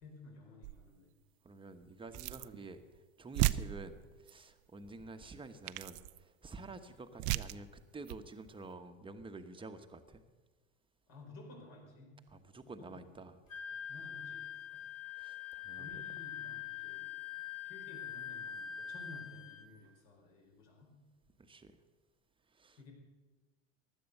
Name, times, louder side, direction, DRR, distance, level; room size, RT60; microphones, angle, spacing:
voice 1, 0.0-1.1 11.1-12.2 12.6-13.1 13.9-14.4 14.7-14.9 15.8-17.2 17.6-21.0 22.8-22.9, left 2 dB, 55° left, 0 dB, 4.8 m, -54 dB
sound 1, 0.6-1.0 2.1-2.6 2.9-3.0 3.3-4.3 5.2-5.3 5.7-6.2 7.2-7.6 8.0-8.2, right 17 dB, 60° right, 0.6 m, -35 dB
voice 2, 1.4-2.8 3.2-10.2 12.3-13.4 15.2-16.0 21.4-21.7 22.5-22.8, right 3 dB, 15° right, 7 dB, 1.1 m, -49 dB
Wind instrument woodwind instrument, 13.5-19.7, left 9 dB, 85° left, 1.9 m, -44 dB
15.5 x 11.0 x 6.7 m, 1.3 s
hypercardioid pair, 95°, 39 cm